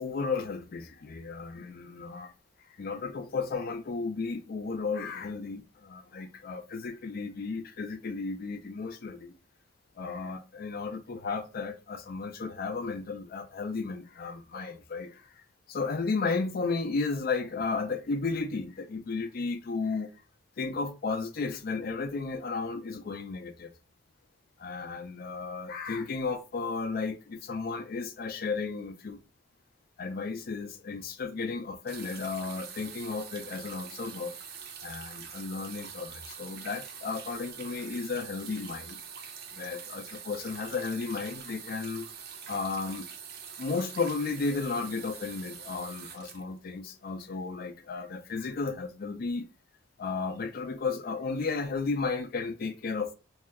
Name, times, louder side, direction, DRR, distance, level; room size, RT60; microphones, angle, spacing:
voice 1, 0.0-2.3 2.8-9.3 10.0-15.3 15.7-20.1 20.6-23.7 24.6-29.2 30.0-34.3 34.8-39.0 39.5-42.1 42.5-43.1 43.6-49.5 50.0-53.1, left 4 dB, 50° left, 0.4 m, -34 dB
sound 1, 31.9-47.2 48.2-48.3, right 7 dB, 55° right, 0.5 m, -44 dB
2.7 x 2.2 x 3.5 m
head